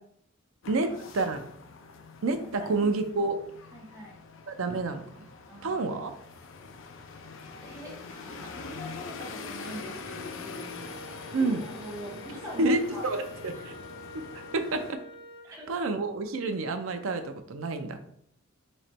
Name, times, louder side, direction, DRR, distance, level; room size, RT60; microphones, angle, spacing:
sound 1, 0.6-14.9, left 4 dB, 65° left, 0.4 m, -44 dB
voice 1, 0.7-1.4 2.2-3.4 4.5-5.3 5.6-6.1 11.3-11.6 12.6-13.7 14.5-15.0 15.7-18.0, right 3 dB, 80° right, 7 dB, 0.5 m, -29 dB
voice 2, 2.3-2.7 3.7-4.2 5.5-5.8 7.6-13.1 13.5-13.6 15.5-15.7, equal, 15° right, -4 dB, 1.0 m, -43 dB
Wind instrument woodwind instrument, 10.6-15.5, equal, 30° left, 1.2 m, -47 dB
3.2 x 2.9 x 4.2 m, 0.66 s
head